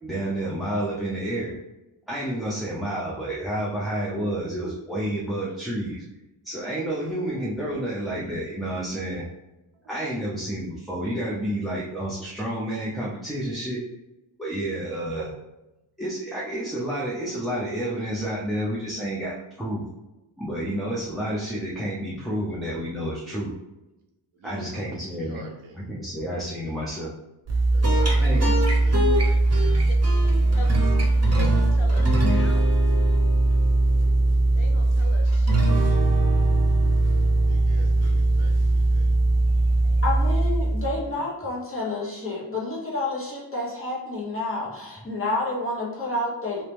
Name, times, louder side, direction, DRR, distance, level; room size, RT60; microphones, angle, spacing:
voice 1, 0.0-1.6 2.1-6.0 6.4-9.2 9.9-13.8 14.4-15.3 16.0-19.8 20.4-23.5 24.4-25.4 25.8-27.1 28.2-28.5, right 1 dB, ahead, -6 dB, 0.6 m, -30 dB
voice 2, 24.3-25.8 27.7-29.7 30.5-31.7 37.5-40.0, right 2 dB, 80° right, 1 dB, 0.6 m, -46 dB
sound 1, 27.5-41.0, right 2 dB, 30° right, 0.9 m, -20 dB
voice 3, 30.5-31.0 31.4-32.7 34.6-36.0, left 3 dB, 70° left, 3 dB, 0.8 m, -40 dB
voice 4, 40.0-46.6, left 2 dB, 25° left, -5 dB, 1.2 m, -29 dB
3.1 x 2.8 x 3.4 m, 1.0 s
wide cardioid pair, 75°, 50 cm